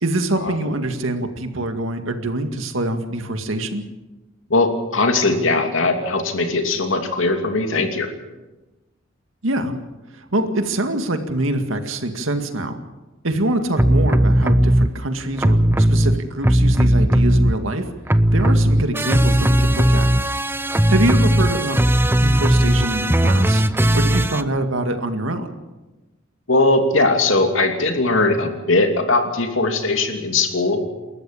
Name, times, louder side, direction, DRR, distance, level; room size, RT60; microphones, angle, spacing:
voice 1, 0.0-3.8 9.4-9.7 10.1-12.8 13.2-17.9 18.3-20.1 20.9-21.8 22.2-23.6 23.9-25.6, right 1 dB, 80° right, 6 dB, 2.1 m, -24 dB
voice 2, 4.5-8.1 26.5-30.8, left 2 dB, 75° left, 5 dB, 2.8 m, -19 dB
sound 1, 13.8-14.9 15.4-17.8 18.1-24.4, right 1 dB, 10° right, 0.7 m, -17 dB
28.0 x 14.0 x 7.2 m, 1.1 s
head